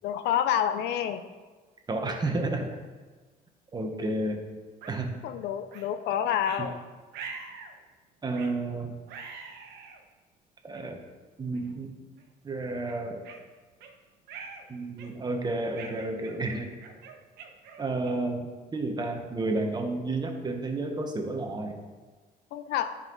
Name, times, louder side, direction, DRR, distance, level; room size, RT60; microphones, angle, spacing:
voice 1, 0.0-1.2 5.2-6.8 22.5-23.0, left 9 dB, 80° left, 10 dB, 0.6 m, -28 dB
voice 2, 1.9-2.8 3.7-4.4 4.9-5.1 6.6-6.7 8.2-9.0 10.6-11.0 11.4-12.0 12.4-13.2 14.7-16.7 17.8-21.8, right 2 dB, 25° right, 3 dB, 1.2 m, -31 dB
sound 1, 4.8-5.0 5.7-5.9 6.4-6.6 7.1-7.7 8.3-8.6 9.1-10.0 10.7-10.8 11.5-11.7 12.2-12.3 12.9-13.9 14.3-14.6 15.0-15.3 15.8-18.3, right 5 dB, 80° right, 1.1 m, -44 dB
10.5 x 5.6 x 3.9 m, 1.4 s
cardioid pair, 110°, 17 cm